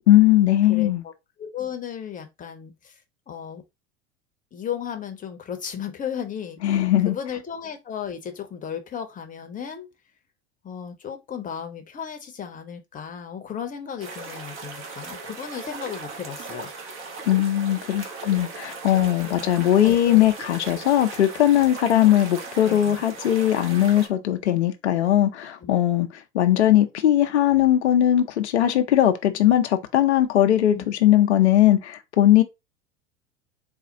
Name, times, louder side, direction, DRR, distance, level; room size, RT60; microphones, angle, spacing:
voice 1, 0.1-1.0 6.6-7.1 17.3-32.4, left 12 dB, 70° left, 0.7 m, -19 dB
voice 2, 0.7-1.1 1.4-2.9 3.3-3.6 4.5-6.8 7.0-9.9 10.6-16.7 18.9-19.5 19.8-20.3 22.7-23.0 25.6-25.7 30.7-30.8, left 8 dB, 25° left, 0.9 m, -35 dB
sound 1, 14.0-24.1, right 4 dB, 35° right, 1.3 m, -38 dB
4.2 x 2.4 x 3.9 m
figure-of-eight pair, 80°, 34 cm